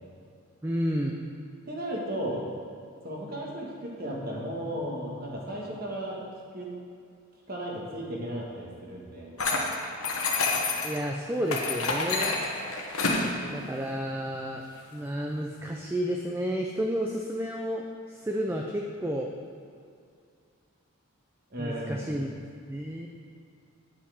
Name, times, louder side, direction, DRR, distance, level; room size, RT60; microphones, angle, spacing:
voice 1, 0.6-1.2 10.8-12.4 13.5-14.6 14.9-17.8 18.1-19.3 21.6-22.3 22.7-23.1, equal, 10° right, 1 dB, 0.3 m, -31 dB
voice 2, 1.7-2.4 3.0-6.2 6.5-6.7 7.5-9.4 21.5-22.1, equal, 45° right, -2 dB, 1.4 m, -35 dB
sound 1, 9.4-11.0 11.5-13.3, left 3 dB, 80° left, 1.1 m, -28 dB
9.1 x 5.6 x 4.9 m, 2.3 s
head